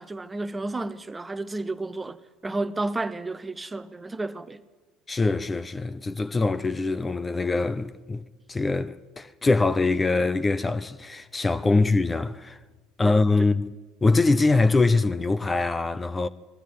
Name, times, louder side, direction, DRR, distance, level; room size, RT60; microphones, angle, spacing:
voice 1, 0.0-2.2 2.4-4.6 11.6-11.9 13.0-13.2, right 2 dB, 15° right, 0.9 m, -32 dB
voice 2, 5.1-12.6 13.0-13.7 14.0-16.3, left 3 dB, 20° left, 0.7 m, -23 dB
20.5 x 13.0 x 9.4 m
hypercardioid pair, 65°, 0 cm